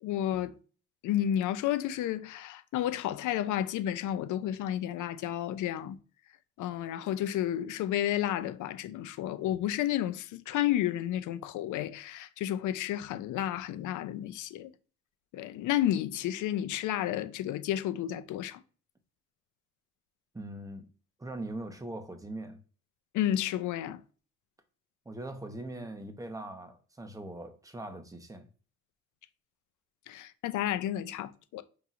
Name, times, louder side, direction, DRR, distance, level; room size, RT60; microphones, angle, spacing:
voice 1, 0.0-0.6 1.0-6.0 6.6-14.7 15.3-18.6 23.1-24.0 30.1-31.6, left 12 dB, 80° left, 0.5 m, -31 dB
voice 2, 20.3-20.9 21.2-22.6 25.0-28.5, right 1 dB, 10° right, 0.8 m, -41 dB
5.4 x 2.8 x 2.5 m
cardioid pair, 90°, 30 cm